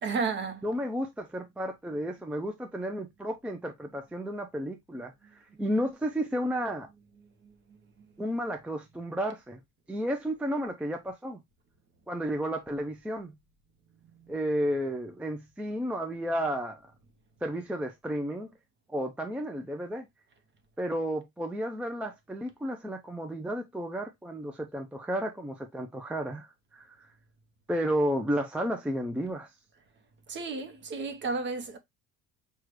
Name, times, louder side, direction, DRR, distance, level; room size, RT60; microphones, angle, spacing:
voice 1, 0.0-0.7 5.5-5.6 7.4-8.1 14.1-14.4 30.3-31.8, right 4 dB, 35° right, 0.8 m, -34 dB
voice 2, 0.6-6.9 8.2-9.6 9.9-11.4 12.1-13.3 14.3-16.8 17.4-18.5 18.9-20.1 20.8-27.1 27.7-29.5, equal, 5° right, 0.4 m, -32 dB
6.1 x 2.4 x 3.1 m
cardioid pair, 155°, 32 cm